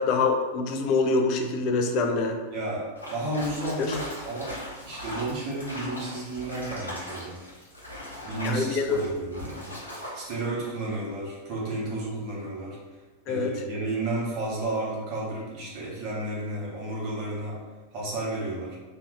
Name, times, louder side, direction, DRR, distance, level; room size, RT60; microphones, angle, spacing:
voice 1, 0.0-2.4 3.8-4.0 8.4-9.0 13.3-13.5, left 4 dB, 40° left, 4 dB, 0.4 m, -25 dB
voice 2, 2.5-4.6 4.8-7.4 8.2-12.8 13.3-17.6 17.9-18.8, right 2 dB, 40° right, -4 dB, 1.0 m, -32 dB
sound 1, 3.0-10.4, equal, 80° left, 0.8 m, -39 dB
2.7 x 2.3 x 3.3 m, 1.3 s
figure-of-eight pair, 90°, 0 cm